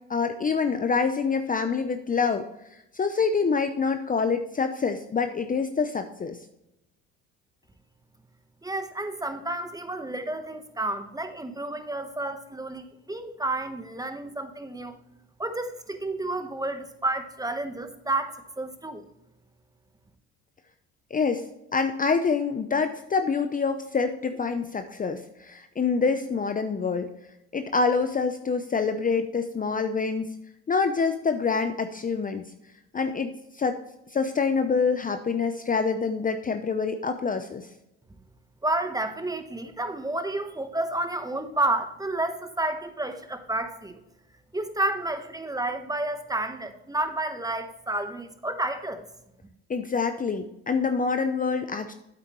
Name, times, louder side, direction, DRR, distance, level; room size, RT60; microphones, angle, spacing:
voice 1, 0.1-2.5 2.9-6.4 21.1-21.5 21.7-27.1 27.5-30.3 30.7-32.4 32.9-33.8 34.1-37.7 49.7-51.9, left 5 dB, 25° left, 8 dB, 0.7 m, -26 dB
voice 2, 8.6-14.9 15.4-19.1 38.6-44.0 44.5-49.0, right 2 dB, 10° right, 8 dB, 1.2 m, -30 dB
8.7 x 8.3 x 3.1 m, 0.85 s
hypercardioid pair, 70°, 34 cm